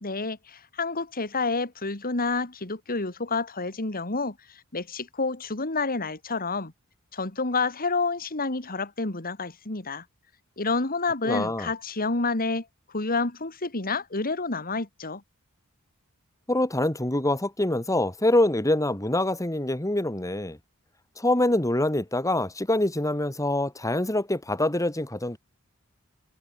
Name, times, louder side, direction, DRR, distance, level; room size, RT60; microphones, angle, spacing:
voice 1, 0.0-6.7 7.1-10.0 10.6-12.7 12.9-15.2, left 3 dB, 40° left, 2.7 m, -29 dB
voice 2, 11.2-11.7 16.5-20.6 21.2-25.4, left 1 dB, 15° left, 2.3 m, -25 dB
head